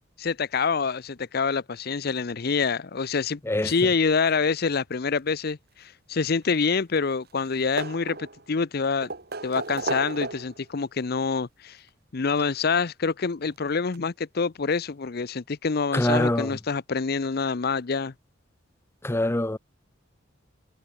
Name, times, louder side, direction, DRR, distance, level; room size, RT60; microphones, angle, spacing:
voice 1, 0.2-9.1 9.4-11.8 12.1-18.1, left 5 dB, 55° left, 0.6 m, -26 dB
sound 1, 6.4-7.1 7.4-8.5 9.0-10.7 11.9-12.0 13.5-13.6 13.9-14.0, right 3 dB, 55° right, 2.5 m, -34 dB
voice 2, 15.9-16.5 19.0-19.6, left 1 dB, 15° left, 0.6 m, -24 dB
head